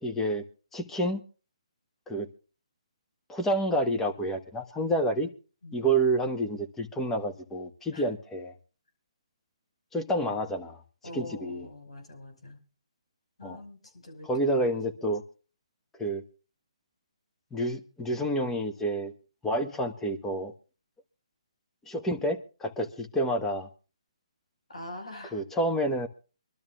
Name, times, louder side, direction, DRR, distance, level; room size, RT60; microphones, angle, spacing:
voice 1, 0.0-0.5 0.7-1.2 2.1-2.3 3.3-5.3 5.7-8.5 9.9-10.8 11.1-11.7 13.4-13.6 14.2-15.2 16.0-16.2 17.5-19.1 19.4-20.5 21.9-23.7 25.3-26.1, right 1 dB, 10° left, 4 dB, 1.2 m, -29 dB
voice 2, 11.0-12.6 13.4-14.8 24.7-25.4, left 1 dB, 75° left, 4 dB, 5.5 m, -44 dB
25.0 x 12.5 x 2.5 m, 0.35 s
figure-of-eight pair, 145°, 3 cm